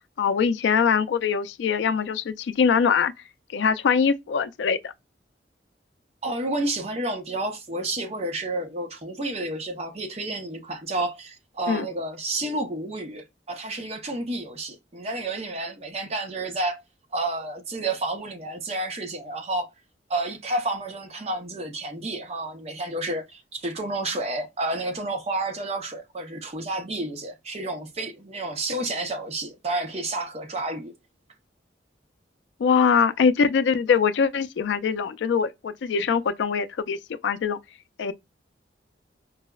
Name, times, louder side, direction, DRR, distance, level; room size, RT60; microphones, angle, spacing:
voice 1, 0.2-3.1 3.5-4.9 11.7-11.9 32.6-37.0 37.2-37.6 38.0-38.1, left 6 dB, 80° left, 0.3 m, -22 dB
voice 2, 6.2-16.8 17.1-19.7 20.1-30.9, right 2 dB, 35° right, 0.7 m, -30 dB
4.6 x 2.0 x 2.2 m
head